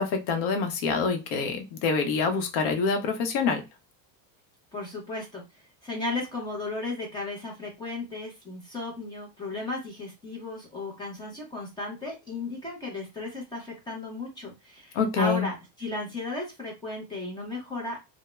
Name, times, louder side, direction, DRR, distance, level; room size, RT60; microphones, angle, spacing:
voice 1, 0.0-3.6 14.9-15.5, left 5 dB, 70° left, 0.8 m, -26 dB
voice 2, 4.7-18.0, left 2 dB, 10° left, 0.5 m, -35 dB
2.2 x 2.1 x 3.0 m
cardioid pair, 180°, 46 cm